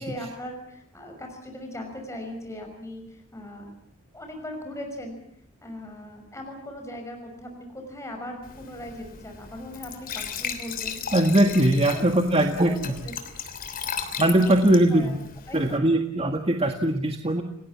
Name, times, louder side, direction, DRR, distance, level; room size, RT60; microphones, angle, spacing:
voice 1, 0.0-3.7 4.1-5.2 5.6-11.1 11.3-13.6 14.4-14.5 14.9-15.9, left 1 dB, 15° left, 3 dB, 6.1 m, -39 dB
Glass / Trickle dribble / Fill (with liquid), 8.4-15.8, left 7 dB, 45° left, 3.2 m, -36 dB
voice 2, 11.1-12.9 14.2-15.2 15.5-17.4, right 1 dB, 30° right, 5 dB, 1.8 m, -21 dB
30.0 x 19.0 x 7.4 m, 0.69 s
head